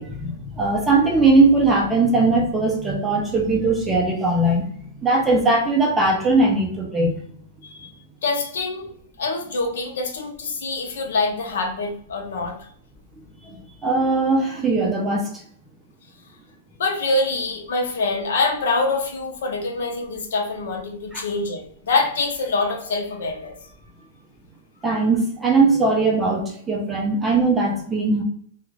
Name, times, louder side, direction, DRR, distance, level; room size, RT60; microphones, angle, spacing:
voice 1, 0.0-7.2 13.5-15.3 21.1-21.2 24.8-28.2, right 3 dB, 10° right, 0 dB, 0.5 m, -20 dB
voice 2, 8.2-8.9 9.2-12.7 16.8-23.5, left 3 dB, 80° left, 2 dB, 0.7 m, -25 dB
2.4 x 2.4 x 3.0 m, 0.64 s
supercardioid pair, 170°, 0 cm